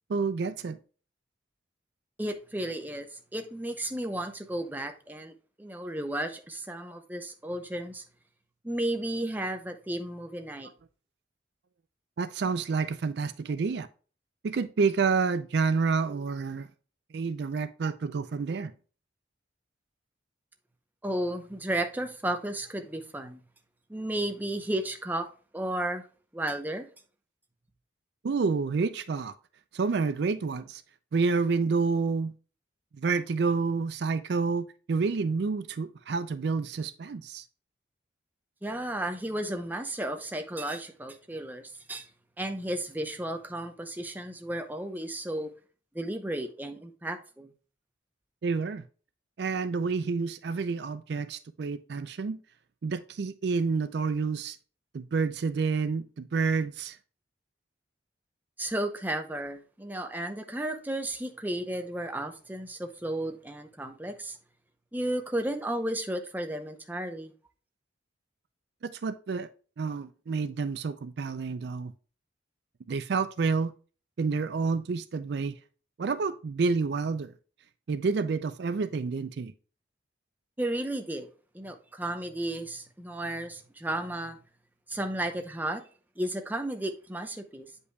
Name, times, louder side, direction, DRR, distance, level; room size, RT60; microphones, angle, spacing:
voice 1, 0.1-0.8 12.2-13.9 14.4-16.7 17.1-18.7 28.2-29.3 29.7-30.8 31.1-32.3 32.9-37.4 48.4-48.8 49.4-52.4 52.8-54.6 54.9-57.0 68.8-69.5 69.8-71.9 72.9-73.7 74.2-75.5 76.0-77.3 77.9-79.5, right 4 dB, 55° right, 0.4 m, -29 dB
voice 2, 2.2-8.0 8.6-10.7 21.0-23.4 23.9-25.3 25.5-26.1 26.3-26.9 38.6-42.1 42.4-45.5 45.9-47.5 58.6-64.4 64.9-67.3 80.6-81.3 81.5-84.4 84.9-85.8 86.2-87.7, right 1 dB, 10° right, 0.6 m, -33 dB
8.1 x 5.3 x 2.2 m
head